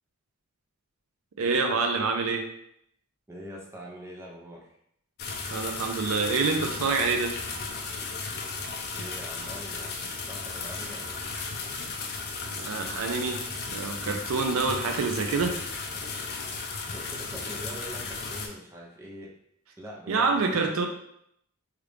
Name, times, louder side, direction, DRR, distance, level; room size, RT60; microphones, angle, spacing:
voice 1, 1.4-2.5 5.5-7.3 12.5-13.4 13.7-15.5 20.1-20.9, right 4 dB, 75° right, 4 dB, 0.4 m, -26 dB
voice 2, 3.3-4.7 8.9-11.2 16.9-19.3 19.8-20.9, equal, 15° right, -3 dB, 0.6 m, -43 dB
sound 1, 5.2-18.5, left 4 dB, 50° left, 0.5 m, -35 dB
3.1 x 2.4 x 3.3 m, 0.73 s
head